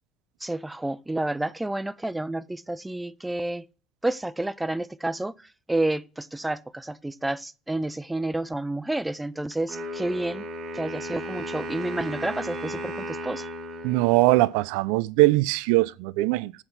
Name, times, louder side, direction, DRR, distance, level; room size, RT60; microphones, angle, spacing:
voice 1, 0.4-3.7 4.0-5.3 5.7-10.5 10.7-13.5, right 2 dB, 5° right, 0.3 m, -30 dB
Wind instrument woodwind instrument, 9.7-14.7, equal, 35° right, 2.0 m, -35 dB
voice 2, 13.8-16.5, right 19 dB, 85° right, 0.4 m, -21 dB
7.9 x 6.1 x 4.1 m
cardioid pair, 150°, 0 cm